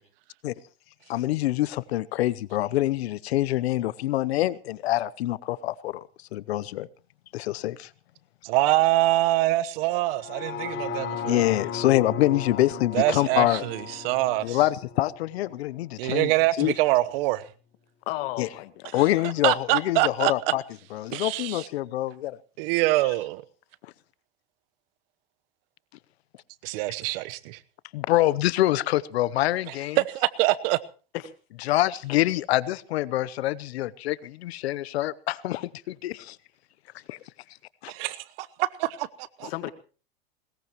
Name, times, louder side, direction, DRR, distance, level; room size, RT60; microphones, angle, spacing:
voice 1, 1.1-6.9 7.3-7.9 11.3-13.6 14.4-16.3 16.6-16.7 18.4-18.5 18.9-20.6 20.9-22.4 27.9-30.0 31.7-36.4 37.1-37.2 37.8-37.9 39.4-39.7, left 15 dB, 80° left, 0.8 m, -25 dB
voice 2, 8.4-11.4 12.9-14.6 16.0-17.4 19.4-20.3 21.1-21.7 22.6-23.4 26.6-27.6 29.7-30.8 37.9-39.5, right 17 dB, 65° right, 1.1 m, -25 dB
sound 1, 10.2-16.3 16.7-16.8, left 6 dB, 40° left, 4.2 m, -36 dB
voice 3, 18.1-19.3 31.1-31.3 39.4-39.7, left 16 dB, 65° left, 1.9 m, -35 dB
20.5 x 20.5 x 3.0 m
hypercardioid pair, 110°, 31 cm